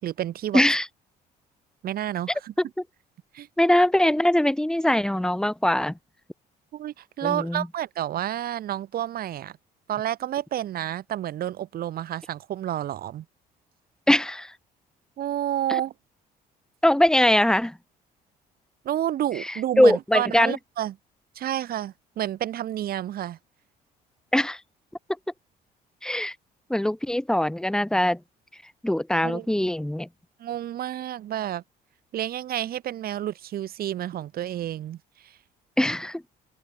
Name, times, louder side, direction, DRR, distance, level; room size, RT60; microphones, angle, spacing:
voice 1, 0.0-0.6 1.8-2.5 3.3-3.5 6.7-9.6 9.9-13.3 15.2-15.9 18.8-20.9 21.4-23.4 29.2-29.5 30.4-31.6 32.1-35.4, right 12 dB, 60° right, 5.2 m, -30 dB
voice 2, 0.5-0.9 3.6-6.0 7.2-7.7 14.1-14.5 15.7-15.8 16.8-17.8 19.4-20.6 24.3-24.6 26.0-26.4 26.7-28.2 28.8-30.1 35.8-36.2, left 1 dB, 5° left, 1.8 m, -22 dB
cardioid pair, 110°, 17 cm